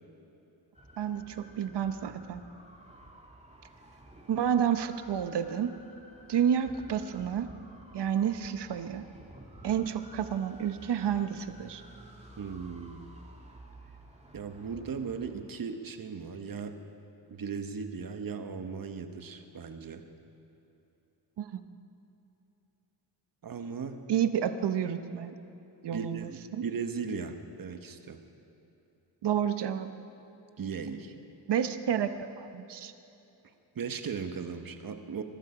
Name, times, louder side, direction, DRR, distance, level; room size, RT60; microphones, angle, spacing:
sound 1, 0.7-15.4, right 1 dB, 15° right, 2.2 m, -52 dB
voice 1, 1.0-2.4 4.3-5.7 6.3-7.5 7.9-9.0 9.6-11.8 21.4-21.6 24.1-25.3 25.8-26.7 29.2-29.9 31.5-32.9, right 8 dB, 70° right, 10 dB, 0.9 m, -30 dB
voice 2, 12.4-13.0 14.3-16.7 17.3-20.0 23.4-24.0 25.9-28.2 30.6-31.1 33.7-35.2, right 5 dB, 50° right, 7 dB, 1.2 m, -37 dB
22.0 x 12.5 x 5.0 m, 3.0 s
cardioid pair, 95°, 43 cm